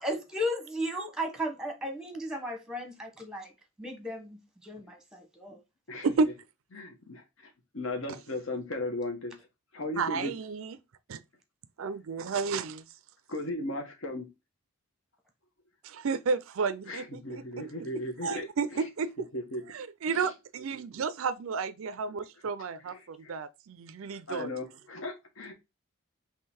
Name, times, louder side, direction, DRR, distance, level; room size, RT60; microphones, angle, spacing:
voice 1, 0.0-3.5 3.8-5.6, equal, 5° right, 1.0 m, -35 dB
voice 2, 6.7-9.3 9.7-10.3 13.3-14.3 16.9-18.9 19.3-19.6 20.1-20.3 22.9-23.4 24.3-25.5, left 1 dB, 60° left, 1.0 m, -37 dB
voice 3, 10.0-10.8 11.1-11.2 11.8-12.8 15.8-17.4 18.2-19.1 19.7-24.5, right 5 dB, 65° right, 0.4 m, -32 dB
3.8 x 2.9 x 4.2 m
head